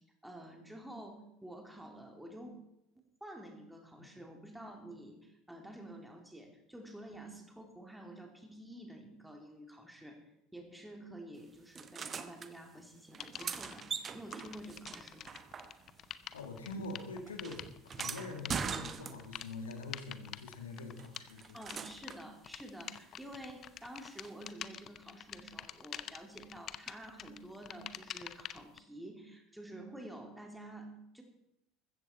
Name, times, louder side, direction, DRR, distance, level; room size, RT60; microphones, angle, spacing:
voice 1, 0.0-2.6 3.0-10.2 10.5-15.4 21.5-31.2, right 1 dB, 5° right, 2 dB, 2.8 m, -50 dB
sound 1, 11.8-12.5 13.1-16.1 16.4-19.5 21.0-22.3 24.2-24.3, right 6 dB, 30° right, 1.0 m, -42 dB
sound 2, 13.2-13.8 14.3-28.8, left 10 dB, 40° left, 0.7 m, -47 dB
voice 2, 16.3-21.6, left 3 dB, 75° left, 4 dB, 2.2 m, -44 dB
15.0 x 14.0 x 4.3 m, 0.83 s
figure-of-eight pair, 70°, 0 cm